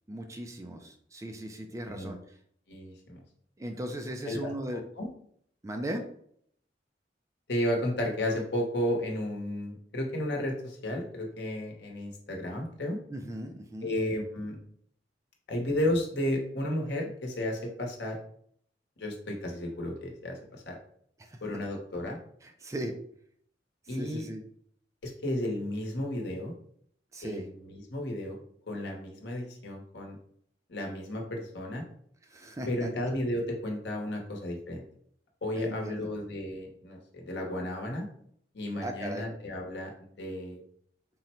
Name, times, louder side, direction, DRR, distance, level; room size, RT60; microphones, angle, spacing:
voice 1, 0.1-2.2 3.6-4.8 5.6-6.0 13.1-13.9 21.2-21.4 22.4-22.9 23.9-24.4 27.1-27.5 32.3-32.9 35.5-36.1 38.8-39.3, right 1 dB, 20° right, 4 dB, 0.4 m, -37 dB
voice 2, 2.7-3.2 4.2-5.1 7.5-13.0 13.8-14.6 15.5-18.2 19.0-20.7 21.4-22.2 23.9-24.2 25.0-26.5 27.2-28.4 28.7-30.2 30.7-31.8 32.7-34.8 35.4-38.1 38.5-40.6, left 1 dB, 70° left, 1 dB, 0.9 m, -33 dB
3.8 x 2.1 x 4.2 m, 0.65 s
head